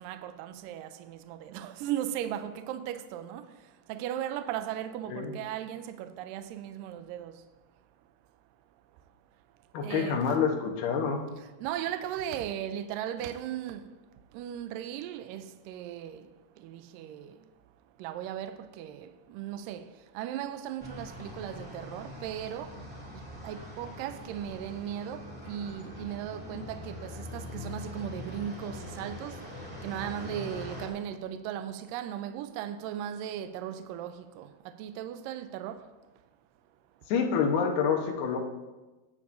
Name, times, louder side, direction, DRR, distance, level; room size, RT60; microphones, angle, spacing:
voice 1, 0.0-3.5 3.9-7.4 9.8-10.4 11.4-13.9 14.3-16.3 16.6-17.4 18.0-22.8 23.4-29.4 29.8-35.8, right 10 dB, 90° right, 2.0 m, -37 dB
voice 2, 9.7-11.3 37.1-38.4, left 6 dB, 80° left, 3.0 m, -27 dB
sound 1, 20.8-30.9, left 1 dB, 5° right, 1.1 m, -43 dB
18.0 x 8.7 x 2.6 m
omnidirectional pair, 4.5 m